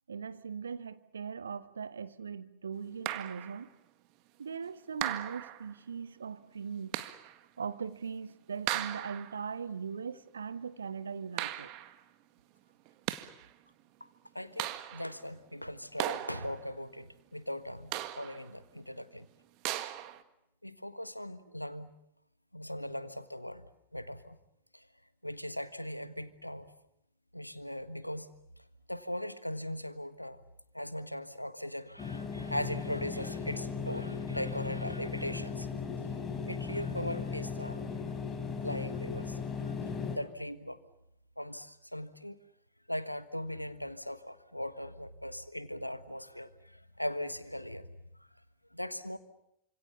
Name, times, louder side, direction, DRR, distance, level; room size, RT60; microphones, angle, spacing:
voice 1, 0.1-3.7 4.4-6.9 7.6-11.7, right 6 dB, 70° right, 1.3 m, -40 dB
sound 1, 3.1-3.6 5.0-5.7 6.9-7.4 8.7-9.4 11.4-12.0 12.9-13.5 14.6-15.2 16.0-16.7 17.9-18.5 19.6-20.2, right 14 dB, 40° right, 1.7 m, -37 dB
voice 2, 14.3-19.3 20.6-21.9 22.5-24.4 24.7-24.9 25.2-26.7 27.3-28.3 28.9-30.4 30.7-35.7 36.4-37.9 38.6-39.4 39.7-39.8 40.1-40.8 41.4-42.4 42.9-47.9 48.7-49.2, left 1 dB, 90° left, 1.4 m, -39 dB
sound 2, 32.0-40.2, left 5 dB, 20° left, 5.4 m, -37 dB
28.0 x 26.5 x 7.1 m
figure-of-eight pair, 90°, 0 cm